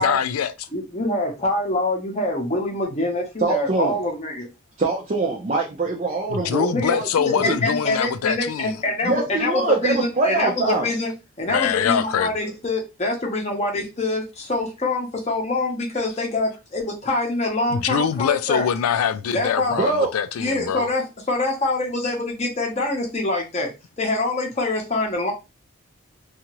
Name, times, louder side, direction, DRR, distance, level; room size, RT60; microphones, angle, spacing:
voice 1, 0.0-0.7 6.3-8.8 11.5-12.3 17.7-20.9, left 8 dB, 80° left, 0.3 m, -23 dB
voice 2, 0.7-4.5 6.7-6.9 7.4-11.1 11.4-18.7 19.3-19.7 20.4-21.0 21.3-23.7 24.0-25.3, left 2 dB, 30° left, 0.7 m, -25 dB
voice 3, 3.4-4.0 4.8-7.1 7.4-7.6 9.0-10.9 19.7-20.1, right 3 dB, 35° right, 0.5 m, -23 dB
2.7 x 2.4 x 2.9 m
head